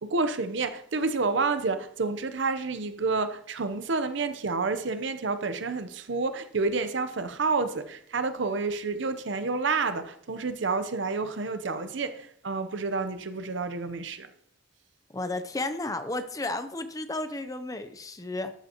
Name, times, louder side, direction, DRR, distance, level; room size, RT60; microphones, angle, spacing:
voice 1, 0.0-14.3, right 4 dB, 65° right, 0.7 m, -29 dB
voice 2, 15.1-18.5, left 2 dB, 20° left, 0.6 m, -33 dB
13.0 x 8.1 x 2.9 m
head